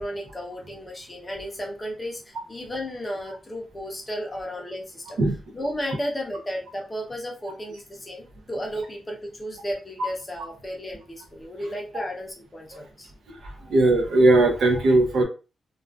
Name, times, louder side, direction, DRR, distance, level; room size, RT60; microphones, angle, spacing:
voice 1, 0.0-5.2 5.5-13.1 13.6-13.7, equal, 15° left, -1 dB, 0.6 m, -34 dB
voice 2, 13.3-15.2, right 2 dB, 65° right, 3 dB, 0.5 m, -19 dB
2.4 x 2.3 x 2.3 m, 0.33 s
wide cardioid pair, 175°, 0 cm